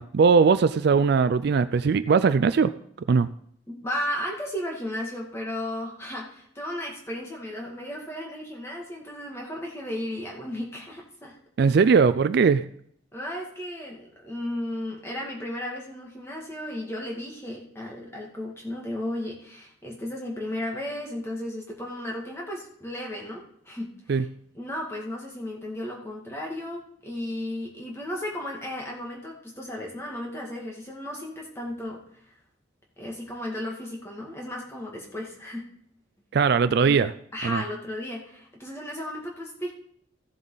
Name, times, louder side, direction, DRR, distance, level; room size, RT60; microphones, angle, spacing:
voice 1, 0.0-2.7 3.1-3.3 11.6-12.6 24.1-24.2 36.3-37.1 37.4-37.6, right 5 dB, 50° right, 13 dB, 0.3 m, -20 dB
voice 2, 3.7-11.4 13.1-24.3 24.5-32.3 33.0-35.6 36.7-39.7, left 1 dB, 15° left, -1 dB, 2.1 m, -34 dB
15.5 x 7.3 x 3.9 m, 0.67 s
head